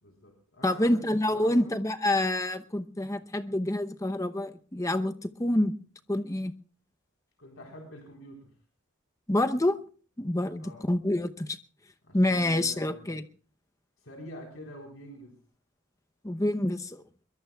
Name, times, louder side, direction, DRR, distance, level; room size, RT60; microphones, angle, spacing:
voice 1, 0.0-1.0 1.3-1.7 7.4-8.5 10.6-10.8 12.0-13.1 14.0-15.3, equal, 65° left, 0 dB, 4.1 m, -46 dB
voice 2, 0.6-5.7 6.1-6.5 9.3-9.8 10.2-11.6 12.1-13.2 16.2-17.0, left 1 dB, 15° left, 9 dB, 0.8 m, -27 dB
23.5 x 22.5 x 2.3 m, 0.41 s
head